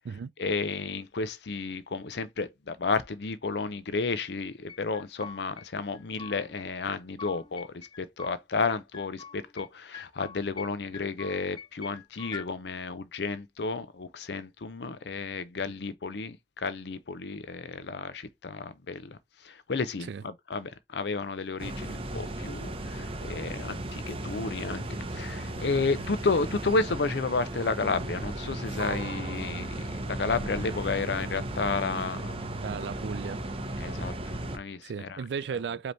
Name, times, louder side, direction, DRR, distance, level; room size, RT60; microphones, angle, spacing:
voice 1, 0.4-24.8 25.1-32.2 33.8-35.2, left 4 dB, 70° left, 0.6 m, -32 dB
sound 1, 4.7-5.7 5.9-6.7 6.9-8.4 8.7-9.7 9.9-10.7 10.9-12.5, left 6 dB, 25° left, 0.4 m, -44 dB
sound 2, 21.6-34.6, right 1 dB, 30° right, 0.7 m, -35 dB
voice 2, 32.6-33.4 34.8-35.9, right 6 dB, 75° right, 0.3 m, -35 dB
5.1 x 3.0 x 3.2 m
head